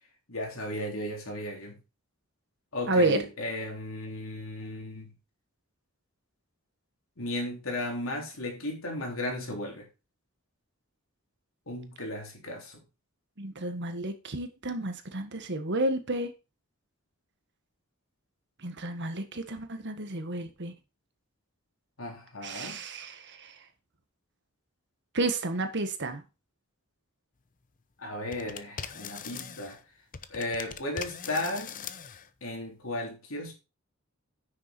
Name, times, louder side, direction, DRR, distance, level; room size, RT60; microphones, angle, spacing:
voice 1, 0.3-1.8 2.7-5.1 7.2-9.9 11.7-12.8 22.0-22.8 28.0-29.8 30.3-31.8 32.4-33.5, left 1 dB, 70° left, 3.6 m, -35 dB
voice 2, 2.9-3.2 13.4-16.3 18.6-20.7 22.4-23.5 25.1-26.2, right 2 dB, 60° right, 1.6 m, -31 dB
sound 1, 28.3-29.8 30.1-32.3, left 7 dB, 40° left, 0.7 m, -41 dB
9.5 x 6.7 x 4.5 m
head